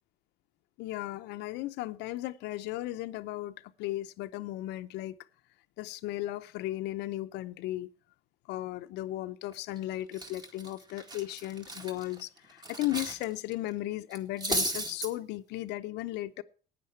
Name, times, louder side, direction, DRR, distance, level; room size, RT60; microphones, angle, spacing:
voice 1, 0.8-5.2 5.8-7.9 8.5-16.4, left 16 dB, 90° left, 0.7 m, -36 dB
Cutlery silverware, 9.5-9.8 10.1-13.2 13.5-13.7 14.1-15.1, right 2 dB, 25° right, 2.1 m, -35 dB
14.5 x 9.6 x 4.4 m
cardioid pair, 110°, 17 cm